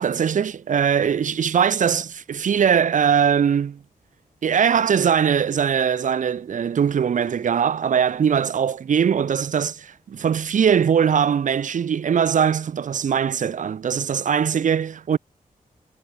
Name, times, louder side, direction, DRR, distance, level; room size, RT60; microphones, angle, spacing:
voice 1, 0.0-3.8 4.4-15.2, right 7 dB, 60° right, 0.7 m, -21 dB
wide cardioid pair, 140°, 15 cm